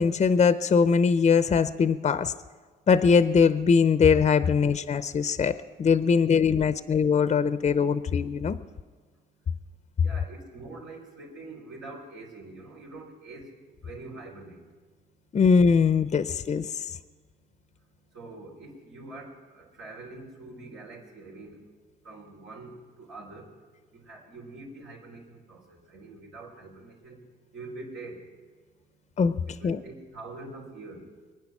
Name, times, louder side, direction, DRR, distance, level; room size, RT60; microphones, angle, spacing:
voice 1, 0.0-2.3 2.9-8.6 15.3-16.7 29.2-29.4 29.6-29.8, left 6 dB, 35° left, 13 dB, 0.6 m, -21 dB
voice 2, 10.0-13.6 13.8-14.6 18.1-21.6 22.0-23.5 23.9-27.2 27.5-28.2 29.5-31.1, right 2 dB, 85° right, -1 dB, 3.8 m, -44 dB
23.5 x 9.4 x 6.0 m, 1.4 s
cardioid pair, 90°, 20 cm